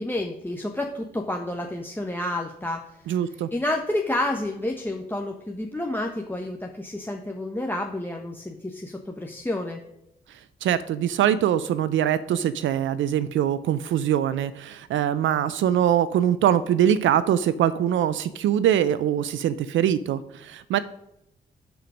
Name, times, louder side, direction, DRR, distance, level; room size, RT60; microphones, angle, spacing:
voice 1, 0.0-9.8, left 1 dB, 10° left, 1 dB, 1.2 m, -30 dB
voice 2, 3.1-3.5 10.6-20.8, right 10 dB, 70° right, 15 dB, 0.5 m, -23 dB
10.5 x 4.6 x 5.1 m, 0.86 s
hypercardioid pair, 40°, 21 cm